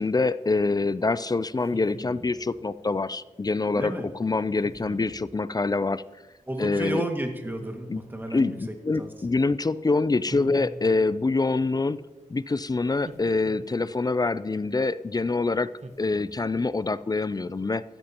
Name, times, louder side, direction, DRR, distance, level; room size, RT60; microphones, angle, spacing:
voice 1, 0.0-3.9 4.2-6.0 6.6-7.0 7.9-8.0 8.3-12.0 12.3-15.7 16.0-17.8, left 3 dB, 30° left, 16 dB, 0.4 m, -25 dB
sound 1, 1.6-2.4 4.6-5.2 7.4-8.2 10.3-11.2 13.0-14.0 15.8-16.6, right 2 dB, 55° right, 1.3 m, -44 dB
voice 2, 3.7-4.1 6.5-8.6 9.0-9.1, right 1 dB, 15° right, 3 dB, 1.9 m, -32 dB
15.5 x 12.5 x 2.9 m, 1.1 s
wide cardioid pair, 65°, 13 cm